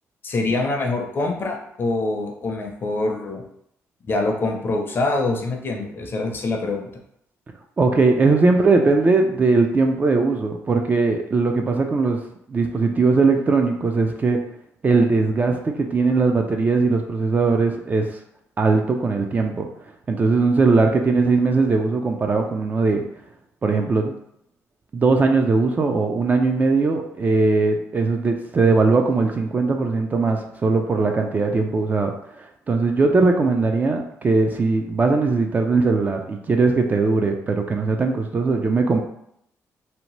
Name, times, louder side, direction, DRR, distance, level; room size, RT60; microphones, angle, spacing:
voice 1, 0.2-3.4 4.0-6.9, left 2 dB, 40° left, 2 dB, 0.5 m, -25 dB
voice 2, 7.8-12.2 12.5-14.4 14.8-18.1 18.6-19.7 20.1-23.0 23.6-24.1 24.9-32.1 32.7-39.0, right 3 dB, 30° right, 3 dB, 0.3 m, -19 dB
2.7 x 2.1 x 3.0 m, 0.74 s
cardioid pair, 110°, 6 cm